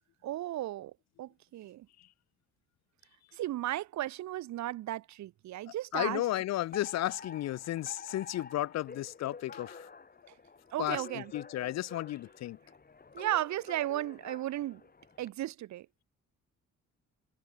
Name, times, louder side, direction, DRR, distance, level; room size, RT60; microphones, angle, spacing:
voice 1, 0.2-0.9 1.2-1.9 3.3-6.3 10.3-10.4 10.7-11.3 13.1-14.8 15.2-15.9, right 14 dB, 65° right, 0.7 m, -35 dB
voice 2, 5.9-9.9 10.8-11.0 11.3-12.6, left 14 dB, 60° left, 0.5 m, -33 dB
Alarm, 6.7-15.3, left 4 dB, 30° left, 4.0 m, -49 dB
cardioid pair, 90°, 30 cm